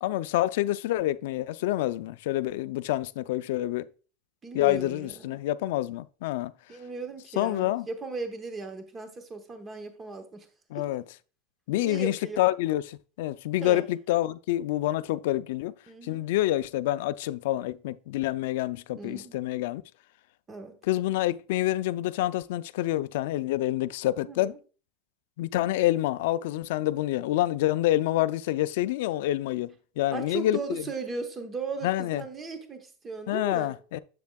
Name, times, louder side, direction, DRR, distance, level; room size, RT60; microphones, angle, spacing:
voice 1, 0.0-3.9 4.5-6.5 7.4-7.9 10.7-11.0 11.7-15.7 16.0-19.8 20.9-24.5 25.4-30.8 31.8-32.2 33.3-34.0, left 15 dB, 65° left, 0.3 m, -27 dB
voice 2, 4.4-5.4 6.7-10.5 10.8-10.9 11.7-12.4 13.6-13.8 15.9-16.3 18.9-19.4 20.5-20.8 24.2-24.6 30.1-33.7, right 4 dB, 15° right, 0.9 m, -37 dB
7.5 x 7.0 x 2.3 m
supercardioid pair, 155°, 0 cm